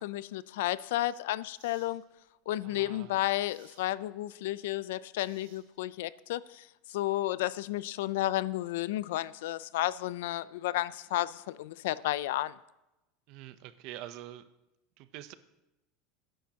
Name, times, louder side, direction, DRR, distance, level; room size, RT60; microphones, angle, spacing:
voice 1, 0.0-2.0 2.5-6.6 6.9-12.5, left 15 dB, 80° left, 0.4 m, -32 dB
sound 1, 0.7-0.8 1.5-1.9 3.4-3.9 5.2-5.9, right 7 dB, 90° right, 2.6 m, -60 dB
voice 2, 2.6-3.2 13.3-14.4 15.0-15.3, right 13 dB, 45° right, 0.6 m, -45 dB
19.5 x 10.0 x 2.8 m
supercardioid pair, 175°, 0 cm